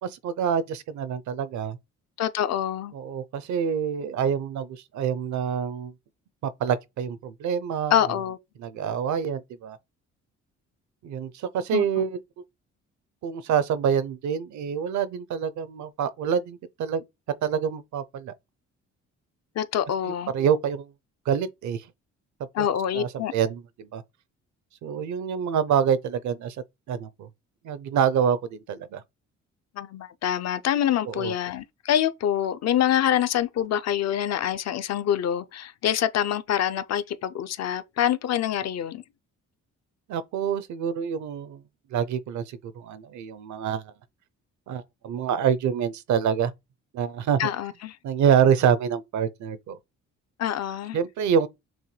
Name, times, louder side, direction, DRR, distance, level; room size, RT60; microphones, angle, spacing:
voice 1, 0.0-1.8 2.9-5.9 6.4-8.0 8.6-9.8 11.0-12.2 13.2-17.0 17.4-18.3 20.3-20.9 21.3-21.8 22.6-22.7 22.9-24.0 24.8-26.6 26.9-27.3 27.6-29.0 31.1-31.3 40.1-41.6 41.9-43.9 44.7-46.5 46.9-47.4 48.0-49.8 50.9-51.5, right 7 dB, 70° right, 0.6 m, -26 dB
voice 2, 2.2-2.9 7.9-8.4 11.7-11.8 19.6-20.3 22.5-23.3 29.8-39.0 47.4-48.0 50.4-51.0, left 10 dB, 60° left, 0.5 m, -25 dB
6.1 x 2.2 x 3.2 m
cardioid pair, 90°, 30 cm